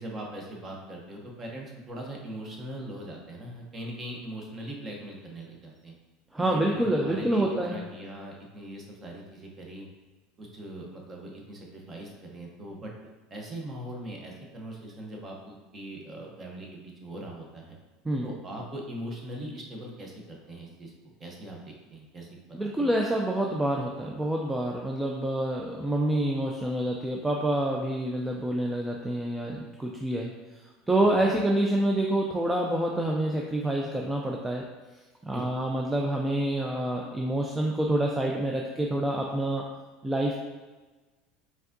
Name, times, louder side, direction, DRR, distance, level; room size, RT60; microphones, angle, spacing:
voice 1, 0.0-5.9 6.4-9.9 10.4-12.9 13.3-17.8 18.2-20.9 21.2-22.9 31.0-31.4 35.3-35.5, right 1 dB, 25° right, -1 dB, 0.8 m, -41 dB
voice 2, 6.3-7.8 18.0-18.3 22.5-30.3 30.9-34.7 35.3-39.7 40.0-40.3, right 1 dB, 5° right, -1 dB, 0.3 m, -27 dB
4.6 x 3.5 x 2.6 m, 1.3 s
supercardioid pair, 135°, 0 cm